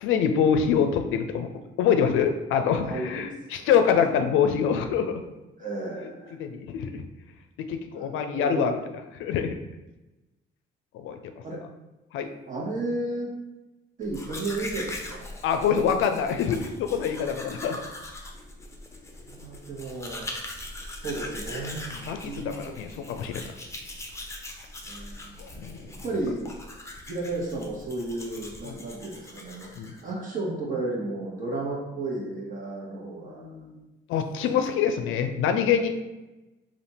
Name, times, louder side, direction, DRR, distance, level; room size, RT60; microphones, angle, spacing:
voice 1, 0.0-1.5 1.8-5.2 6.0-6.1 6.4-7.0 7.6-8.7 9.2-9.5 10.9-11.2 12.1-12.3 15.4-17.8 22.0-23.5 25.4-25.9 28.6-28.8 29.8-29.9 33.3-33.8 34.1-35.9, left 7 dB, 85° left, 7 dB, 0.4 m, -25 dB
voice 2, 2.8-3.3 3.6-3.7 5.6-6.4 7.9-8.9 11.4-11.6 12.5-13.3 14.0-15.3 19.3-20.3 21.0-21.9 22.2-23.2 24.8-25.3 25.9-26.5 27.1-33.5, right 2 dB, 45° right, -3 dB, 1.2 m, -33 dB
Domestic sounds home sounds, 14.0-30.1, left 1 dB, 15° left, 0.6 m, -41 dB
3.4 x 2.5 x 4.2 m, 1.1 s
cardioid pair, 90°, 20 cm